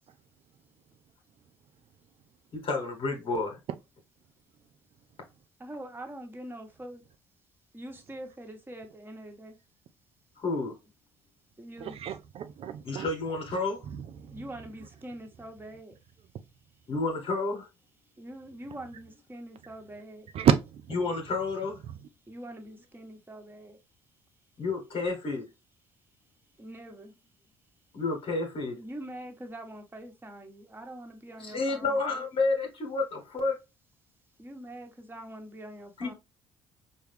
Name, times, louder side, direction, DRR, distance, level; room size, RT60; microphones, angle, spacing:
voice 1, 2.5-3.6 10.4-10.7 12.8-13.8 16.9-17.7 20.9-21.8 24.6-25.5 27.9-28.8 31.4-33.6 36.0-36.1, left 3 dB, 50° left, 1.2 m, -30 dB
voice 2, 5.6-7.0 7.7-9.6 11.6-12.0 14.3-16.0 18.2-20.3 22.3-23.8 26.6-27.1 28.8-32.2 34.4-36.1, right 1 dB, 15° right, 1.2 m, -44 dB
voice 3, 11.8-13.1 14.2-14.4 20.3-21.0, right 8 dB, 55° right, 0.6 m, -28 dB
4.8 x 2.3 x 3.3 m
hypercardioid pair, 50°, 12 cm